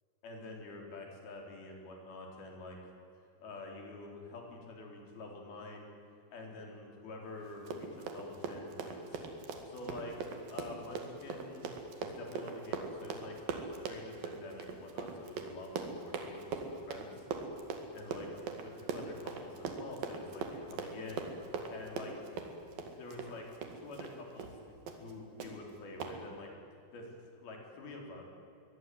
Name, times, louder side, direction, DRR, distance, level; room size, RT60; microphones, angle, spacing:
voice 1, 0.2-2.8 3.4-5.9 6.3-9.3 9.7-10.2 10.5-11.7 12.0-13.4 13.8-17.3 17.9-18.3 18.6-21.3 21.7-22.3 23.0-23.5 23.8-26.5 26.9-28.2, left 2 dB, 60° left, 1 dB, 5.7 m, -47 dB
Run, 7.5-24.1 24.4-24.6 24.9-25.1 25.4-25.5 26.0-26.1, right 4 dB, 60° right, 3.7 m, -41 dB
23.0 x 21.0 x 9.4 m, 2.6 s
omnidirectional pair, 5.1 m